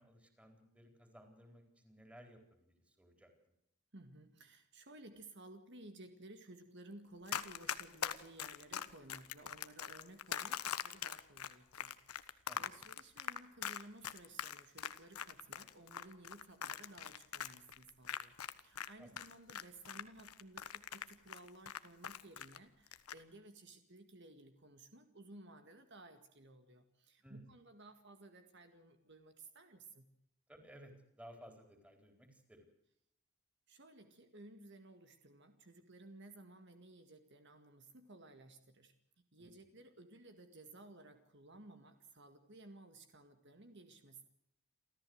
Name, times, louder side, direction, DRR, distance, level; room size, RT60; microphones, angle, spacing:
voice 1, 0.0-3.3 12.5-12.9 19.0-19.2 27.2-27.6 30.5-32.7 39.4-39.7, equal, 5° right, 5 dB, 4.1 m, -58 dB
voice 2, 3.9-30.1 33.7-44.2, right 2 dB, 50° right, 7 dB, 2.0 m, -57 dB
Run, 7.3-18.9 19.2-22.6 22.9-23.2, left 8 dB, 85° left, 1.3 m, -42 dB
29.0 x 14.0 x 8.0 m, 0.80 s
head